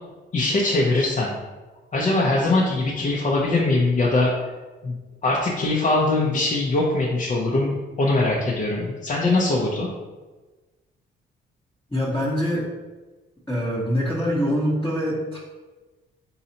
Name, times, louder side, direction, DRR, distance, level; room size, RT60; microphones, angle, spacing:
voice 1, 0.3-1.3 1.9-4.3 4.8-4.9 5.2-9.9, left 2 dB, 40° left, -4 dB, 0.7 m, -22 dB
voice 2, 11.9-12.7 13.5-15.4, equal, 10° left, -8 dB, 1.0 m, -24 dB
4.2 x 3.9 x 2.8 m, 1.2 s
cardioid pair, 90°, 20 cm